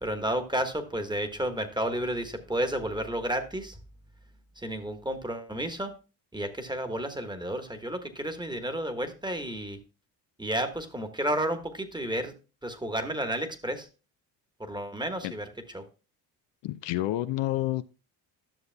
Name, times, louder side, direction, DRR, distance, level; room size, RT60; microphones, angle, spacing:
voice 1, 0.0-3.8 4.6-5.9 6.3-9.8 10.4-12.3 12.6-13.9 14.6-15.5 15.7-15.8, right 1 dB, 10° right, 1.3 m, -31 dB
voice 2, 16.6-17.8, left 15 dB, 65° left, 0.5 m, -29 dB
12.0 x 6.5 x 2.2 m
supercardioid pair, 60°, 48 cm